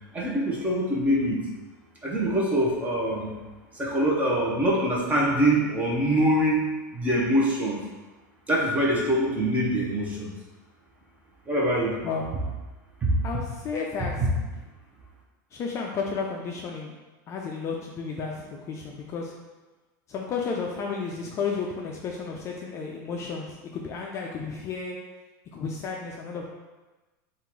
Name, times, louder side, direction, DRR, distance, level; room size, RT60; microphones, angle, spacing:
voice 1, 0.1-1.4 2.0-3.3 3.7-6.7 6.9-7.8 8.5-10.3 11.5-12.0 13.0-13.1, right 1 dB, 15° right, -3 dB, 0.9 m, -24 dB
voice 2, 12.0-12.3 13.2-14.1 15.5-16.9 17.3-19.3 20.1-25.0 25.5-26.5, left 5 dB, 30° left, -1 dB, 0.4 m, -32 dB
3.7 x 2.5 x 4.4 m, 1.2 s
supercardioid pair, 140°, 10 cm